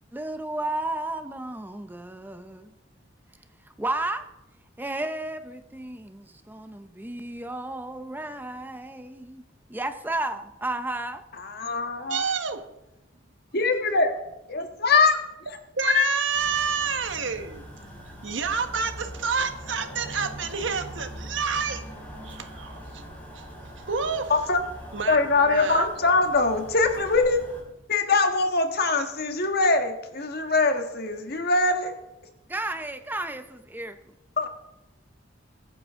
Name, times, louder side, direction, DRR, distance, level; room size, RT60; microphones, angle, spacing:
voice 1, 0.1-2.7 3.8-4.3 4.8-9.4 9.7-11.2 32.5-34.0, right 2 dB, 10° right, 0.6 m, -33 dB
voice 2, 11.4-12.2 13.5-14.1 14.5-15.2 15.8-16.1 24.3-24.6 25.1-27.4 27.9-31.9 34.4-34.5, left 3 dB, 55° left, 1.5 m, -22 dB
voice 3, 12.1-12.6 15.8-17.6 18.2-21.8 22.2-23.0 23.3-24.3 24.9-25.9, right 5 dB, 75° right, 1.3 m, -29 dB
sound 1, 16.3-27.6, equal, 10° left, 5.1 m, -42 dB
22.0 x 9.5 x 3.7 m
head